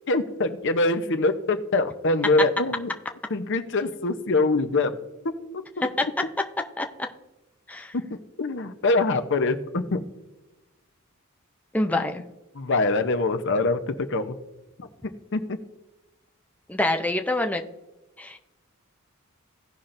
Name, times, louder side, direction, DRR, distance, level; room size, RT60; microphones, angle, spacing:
voice 1, 0.1-2.9 3.3-4.9 5.8-5.9 8.1-10.0 11.9-12.0 12.5-14.4 14.8-14.9 15.3-15.6, left 2 dB, 60° left, 9 dB, 0.8 m, -24 dB
voice 2, 11.7-12.2 16.7-17.7 18.2-18.4, left 2 dB, 5° left, 4 dB, 0.6 m, -25 dB
17.0 x 5.7 x 2.6 m, 1.1 s
head